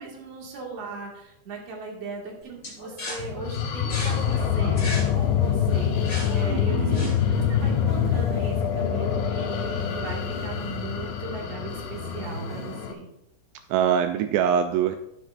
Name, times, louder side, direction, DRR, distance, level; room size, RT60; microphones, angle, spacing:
voice 1, 0.0-13.1, right 4 dB, 45° right, -1 dB, 2.5 m, -38 dB
sound 1, 2.6-7.5, left 1 dB, 35° left, 1.4 m, -37 dB
sound 2, 3.2-12.9, left 8 dB, 80° left, 3.3 m, -25 dB
sound 3, 4.0-12.8, right 1 dB, 70° right, 0.9 m, -39 dB
voice 2, 6.4-7.1 13.7-15.0, right 8 dB, 85° right, 7 dB, 2.4 m, -24 dB
14.0 x 8.0 x 2.6 m, 0.81 s
omnidirectional pair, 5.3 m